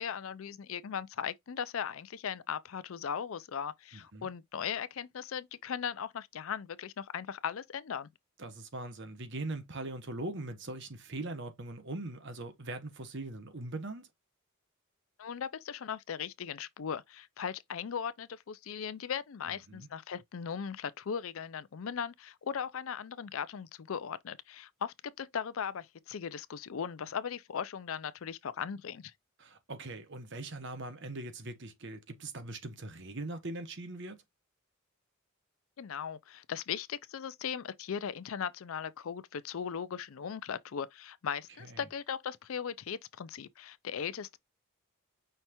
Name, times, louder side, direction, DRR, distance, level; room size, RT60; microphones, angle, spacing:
voice 1, 0.0-8.1 15.2-29.1 35.8-44.4, left 7 dB, 70° left, 0.4 m, -38 dB
voice 2, 3.9-4.3 8.4-14.1 19.7-19.9 29.4-34.2 41.6-41.8, right 2 dB, 55° right, 1.1 m, -41 dB
5.7 x 3.2 x 2.9 m
head